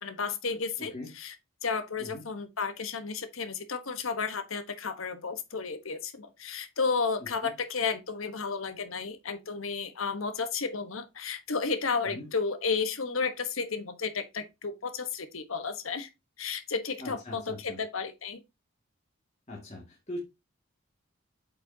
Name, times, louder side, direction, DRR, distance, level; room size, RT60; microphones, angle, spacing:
voice 1, 0.0-1.3 1.6-16.1 16.4-18.4, left 5 dB, 75° left, 1.2 m, -32 dB
voice 2, 0.8-1.1 2.0-2.2 7.2-7.5 12.0-12.3 17.0-17.8 19.5-20.2, left 1 dB, 30° left, 2.1 m, -41 dB
8.5 x 5.0 x 2.8 m
head